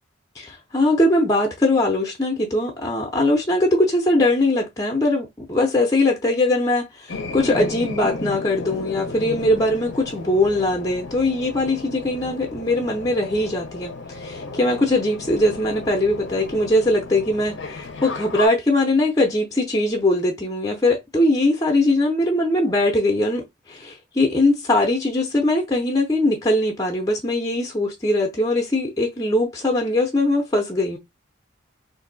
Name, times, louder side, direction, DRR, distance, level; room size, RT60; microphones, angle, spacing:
voice 1, 0.4-31.0, left 1 dB, 15° left, 0.6 m, -21 dB
sound 1, 7.1-18.5, left 3 dB, 60° left, 0.6 m, -34 dB
2.6 x 2.2 x 3.8 m
head